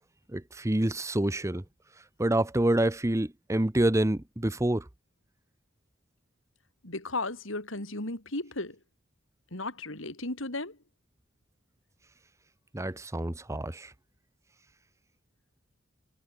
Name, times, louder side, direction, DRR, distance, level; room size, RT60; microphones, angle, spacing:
voice 1, 0.3-1.6 2.2-4.9 12.7-13.9, right 1 dB, 15° right, 0.8 m, -27 dB
voice 2, 6.8-8.8 9.5-10.8, left 2 dB, 70° left, 4.2 m, -35 dB
head